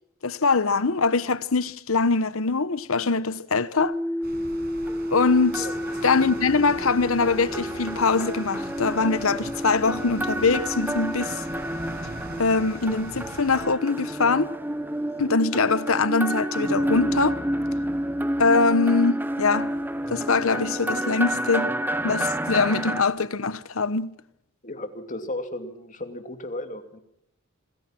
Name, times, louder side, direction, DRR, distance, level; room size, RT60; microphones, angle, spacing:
voice 1, 0.2-4.0 5.1-5.7 6.0-11.4 12.4-14.5 15.2-17.4 18.4-19.7 20.1-21.7 22.0-24.1, left 4 dB, 80° left, 1.1 m, -23 dB
sound 1, 3.8-12.6, equal, 10° left, 2.0 m, -33 dB
sound 2, 4.2-13.6, right 1 dB, 45° right, 6.8 m, -42 dB
sound 3, 4.9-23.0, right 1 dB, 10° right, 1.1 m, -30 dB
voice 2, 24.6-27.0, left 1 dB, 40° left, 2.8 m, -34 dB
27.5 x 20.0 x 6.0 m
head